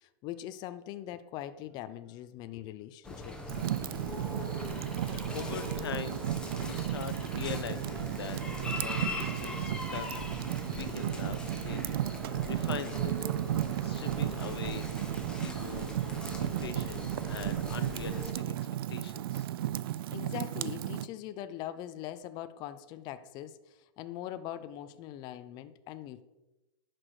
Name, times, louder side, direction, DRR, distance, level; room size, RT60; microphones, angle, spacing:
voice 1, 0.0-4.2 9.1-9.6 10.9-11.0 20.1-26.2, left 12 dB, 35° left, 11 dB, 0.6 m, -42 dB
sound 1, 3.0-18.3, left 2 dB, 5° left, 1.5 m, -41 dB
Fire, 3.5-21.1, right 13 dB, 70° right, 0.5 m, -34 dB
voice 2, 4.8-6.2 6.6-8.4 8.7-10.3 10.7-13.2 13.7-14.9 15.4-15.9 16.4-19.5, left 8 dB, 90° left, 12 dB, 0.9 m, -42 dB
10.5 x 6.0 x 4.9 m, 1.0 s
hypercardioid pair, 140°, 13 cm